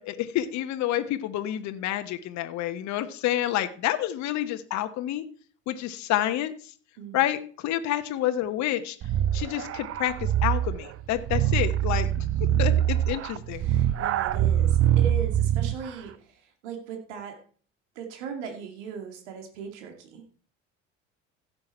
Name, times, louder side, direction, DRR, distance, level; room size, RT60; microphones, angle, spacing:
voice 1, 0.0-5.2 5.7-6.5 7.1-9.0 9.3-12.3 12.6-13.6, left 13 dB, 50° left, 8 dB, 1.2 m, -28 dB
sound 1, 9.0-15.9, right 11 dB, 35° right, 0.8 m, -24 dB
voice 2, 13.5-17.4 18.0-20.3, right 6 dB, 65° right, 4 dB, 2.4 m, -39 dB
15.5 x 7.7 x 4.4 m, 0.43 s
figure-of-eight pair, 65°, 37 cm